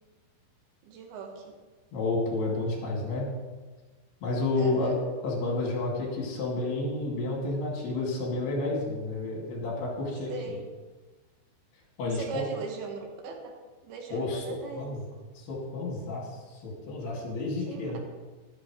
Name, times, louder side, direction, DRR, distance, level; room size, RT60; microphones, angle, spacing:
voice 1, 0.8-1.5 4.6-5.0 10.3-10.6 12.1-15.0 17.6-18.0, right 4 dB, 75° right, 2 dB, 3.3 m, -39 dB
voice 2, 1.9-3.3 4.2-5.0 5.2-10.6 12.0-12.4 14.1-15.0 15.4-18.0, left 2 dB, 75° left, -2 dB, 4.6 m, -30 dB
13.5 x 12.0 x 3.3 m, 1.3 s
omnidirectional pair, 4.7 m